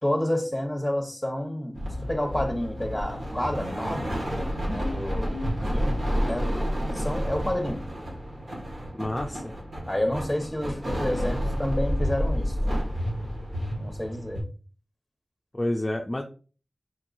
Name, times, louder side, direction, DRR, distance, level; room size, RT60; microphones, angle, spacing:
voice 1, 0.0-4.1 4.7-7.9 9.9-12.8 13.8-14.4, left 1 dB, 10° left, 1.1 m, -30 dB
sound 1, 1.8-14.4, equal, 75° right, 1.7 m, -30 dB
voice 2, 8.9-9.5 15.5-16.2, left 1 dB, 30° left, 0.4 m, -29 dB
4.5 x 4.0 x 2.6 m
wide cardioid pair, 70°, 0 cm